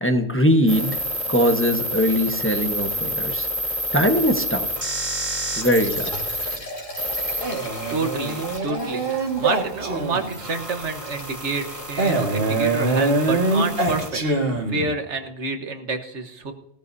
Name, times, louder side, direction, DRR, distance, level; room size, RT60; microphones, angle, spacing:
voice 1, 0.0-1.0 1.3-3.5 3.9-4.8 5.6-6.1, equal, 10° left, 4 dB, 1.1 m, -21 dB
Box of Nails Wet, 0.7-6.6 7.0-14.1, equal, 25° right, 2.9 m, -30 dB
Liquid, 5.5-12.4, equal, 45° left, 3.3 m, -39 dB
Male speech man speaking, 7.4-10.4 12.0-15.0, right 2 dB, 50° right, 2.1 m, -24 dB
voice 2, 7.9-14.2 14.7-16.5, right 3 dB, 70° right, 7 dB, 1.6 m, -28 dB
18.5 x 13.5 x 2.7 m, 0.82 s
omnidirectional pair, 1.2 m